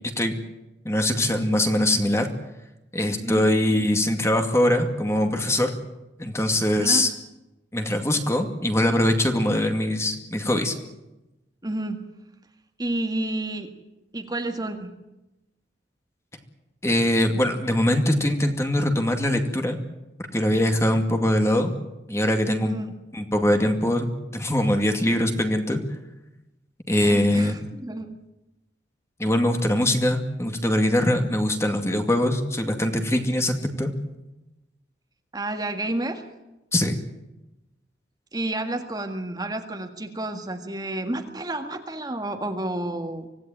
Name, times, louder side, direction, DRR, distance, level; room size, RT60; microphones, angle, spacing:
voice 1, 0.8-2.3 2.9-5.7 6.2-7.1 7.7-10.7 16.8-19.8 20.3-21.7 22.1-22.8 23.1-25.8 26.9-27.5 29.2-33.9 36.7-37.0, left 1 dB, 15° left, 4 dB, 2.3 m, -22 dB
voice 2, 6.8-7.1 11.6-12.0 12.8-13.7 14.1-14.9 22.6-22.9 26.9-28.2 35.3-36.3 38.3-43.3, right 1 dB, 20° right, 4 dB, 1.8 m, -30 dB
25.0 x 17.0 x 9.1 m, 0.97 s
head